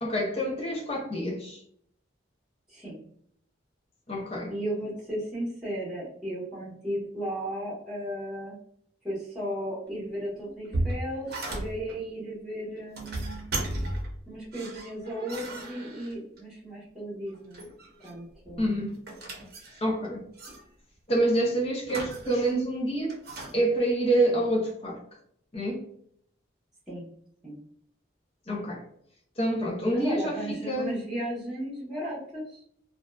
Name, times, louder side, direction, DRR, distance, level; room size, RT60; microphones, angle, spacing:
voice 1, 0.0-1.6 4.1-4.5 18.6-18.9 19.8-20.3 21.1-23.1 23.5-25.0 25.5-25.8 28.5-28.8 29.4-30.9, right 1 dB, 30° left, 0.6 m, -27 dB
voice 2, 2.7-3.0 4.5-8.5 9.0-13.5 14.3-17.7 18.0-18.8 26.9-27.1 27.4-27.6 29.9-32.6, right 1 dB, 5° right, 1.0 m, -35 dB
sound 1, 10.4-12.0 12.8-14.2 14.5-16.4 17.3-18.2 18.5-20.1 20.4-20.6 21.8-22.6 23.1-23.5, right 1 dB, 55° right, 0.7 m, -35 dB
2.5 x 2.2 x 2.2 m
head